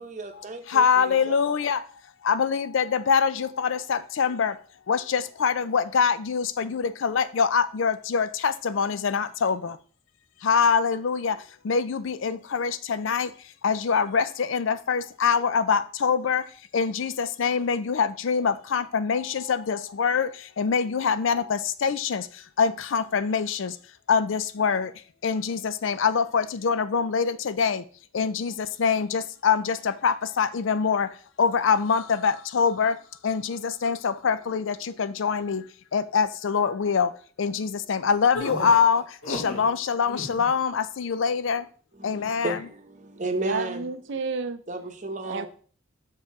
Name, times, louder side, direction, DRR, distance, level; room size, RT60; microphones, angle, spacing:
voice 1, 0.0-1.4 41.9-44.2 44.7-45.5, right 2 dB, 35° right, 0.9 m, -34 dB
voice 2, 0.7-1.8 2.3-4.5 4.9-9.7 10.4-11.3 11.7-13.3 13.6-16.4 16.7-20.3 20.6-22.2 22.6-23.7 24.1-24.9 25.2-27.8 28.1-28.5 28.8-31.1 31.4-32.9 33.2-35.6 35.9-37.1 37.4-39.0 39.3-41.6 42.0-42.6, left 6 dB, 65° left, 0.4 m, -24 dB
sound 1, 38.3-39.7 40.0-40.5, left 2 dB, 90° left, 1.5 m, -33 dB
voice 3, 43.4-44.6 45.3-45.5, right 4 dB, 55° right, 0.5 m, -31 dB
6.4 x 4.5 x 4.7 m
head